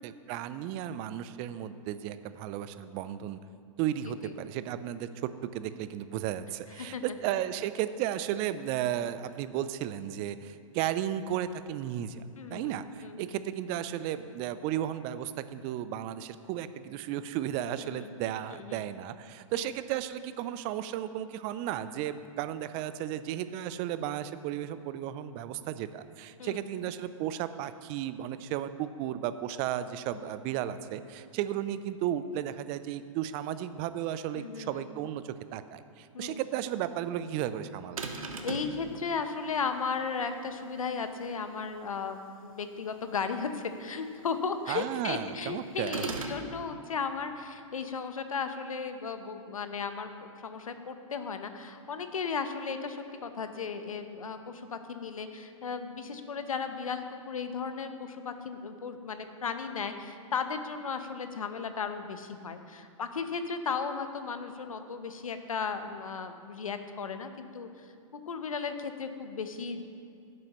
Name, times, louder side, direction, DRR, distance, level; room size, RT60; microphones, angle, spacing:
voice 1, 0.0-3.4 3.8-12.2 12.5-38.0 44.7-46.0, right 11 dB, 35° right, 12 dB, 0.5 m, -34 dB
voice 2, 12.4-12.8 13.0-13.3 17.7-18.1 18.5-18.8 19.5-19.7 26.4-26.6 30.2-30.3 34.3-34.9 36.1-36.4 38.4-67.7 68.1-69.8, left 5 dB, 85° left, 8 dB, 0.9 m, -35 dB
sound 1, 38.0-38.8 45.9-46.4, right 4 dB, 85° right, 1.1 m, -35 dB
16.0 x 7.7 x 3.1 m, 2.3 s
hypercardioid pair, 120°, 17 cm